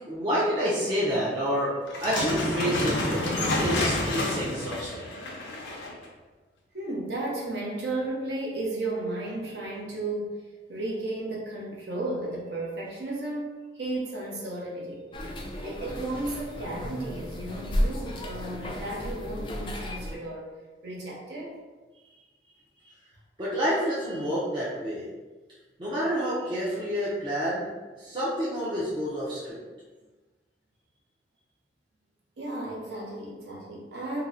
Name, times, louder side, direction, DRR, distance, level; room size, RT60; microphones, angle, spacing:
voice 1, 0.1-1.7 2.0-5.0 23.4-25.1 25.8-27.7 28.0-29.6, equal, 25° right, -9 dB, 0.5 m, -28 dB
sound 1, 1.9-6.1, left 2 dB, 85° left, 0.5 m, -29 dB
voice 2, 6.7-10.4 10.7-15.0 15.6-20.5 20.8-21.6 32.4-34.2, right 2 dB, 70° right, -3 dB, 0.7 m, -34 dB
sound 2, 15.1-20.2, equal, 25° left, 0.3 m, -33 dB
2.8 x 2.0 x 3.6 m, 1.2 s
head